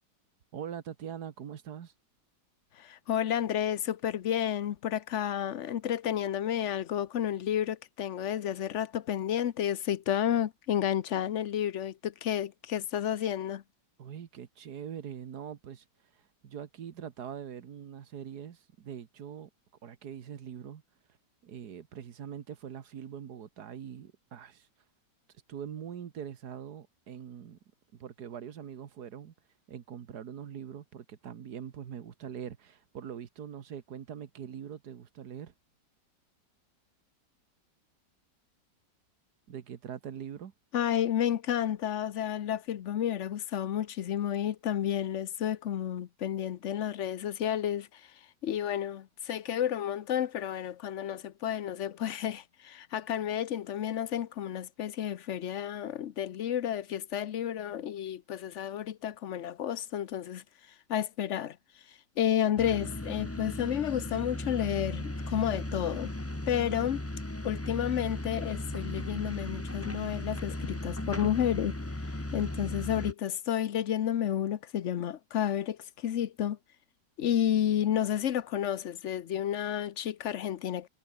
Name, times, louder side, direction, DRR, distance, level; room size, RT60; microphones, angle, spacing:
voice 1, 0.5-1.9 14.0-15.9 16.1-19.5 19.8-20.8 21.4-24.7 25.5-27.6 27.9-29.3 29.7-35.5 39.5-40.5, right 8 dB, 65° right, 1.8 m, -43 dB
voice 2, 2.8-13.6 40.7-48.0 48.4-60.4 60.9-61.6 62.2-66.1 66.5-67.0 67.4-71.7 72.3-76.6 77.2-80.9, left 10 dB, 55° left, 0.9 m, -31 dB
sound 1, 62.6-73.1, left 1 dB, 10° left, 1.3 m, -36 dB
omnidirectional pair, 1.9 m